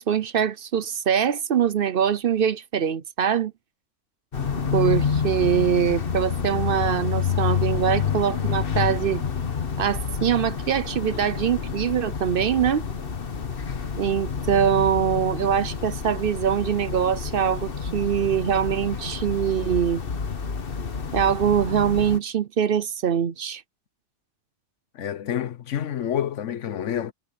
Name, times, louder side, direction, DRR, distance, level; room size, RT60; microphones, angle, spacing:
voice 1, 0.0-3.5 4.7-9.2 9.8-12.8 14.0-20.0 21.1-23.6, right 8 dB, 55° right, 0.8 m, -23 dB
sound 1, 4.3-22.2, left 6 dB, 50° left, 1.4 m, -28 dB
voice 2, 24.9-27.1, left 10 dB, 85° left, 1.2 m, -28 dB
omnidirectional pair, 1.2 m